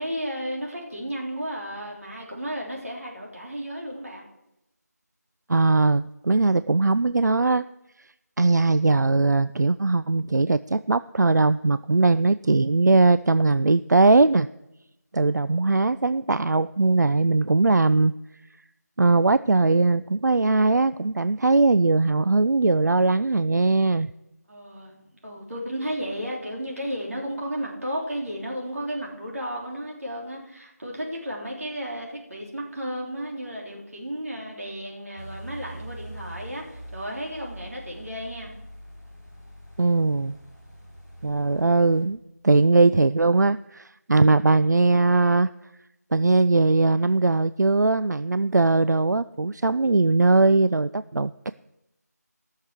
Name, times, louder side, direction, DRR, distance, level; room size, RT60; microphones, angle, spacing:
voice 1, 0.0-4.2 24.5-38.5, equal, 55° right, -2 dB, 3.5 m, -33 dB
voice 2, 5.5-7.6 8.4-14.5 15.1-18.1 19.0-24.1 39.8-40.3 41.2-42.2 42.4-45.5 46.1-51.5, right 3 dB, 85° right, 14 dB, 0.4 m, -20 dB
sound 1, 35.2-42.0, right 1 dB, 10° right, 4.3 m, -43 dB
16.0 x 6.6 x 6.1 m, 0.90 s
figure-of-eight pair, 170°, 9 cm